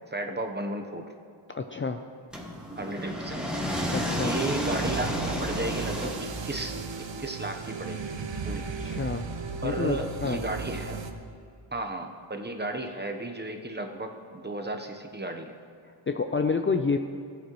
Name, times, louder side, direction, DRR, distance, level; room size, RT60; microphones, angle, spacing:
voice 1, 0.1-1.1 2.8-3.5 4.2-6.8 7.2-8.1 8.4-8.7 9.6-11.0 11.7-15.5, right 2 dB, 20° right, 4 dB, 0.9 m, -34 dB
voice 2, 1.5-2.0 3.9-4.3 8.8-9.3 9.6-10.4 15.9-17.0, left 4 dB, 25° left, 6 dB, 0.5 m, -28 dB
sound 1, 2.3-6.7, equal, ahead, 1.8 m, -31 dB
sound 2, 4.7-11.1, right 4 dB, 65° right, 0.9 m, -36 dB
15.5 x 8.4 x 3.1 m, 2.5 s
cardioid pair, 60°, 47 cm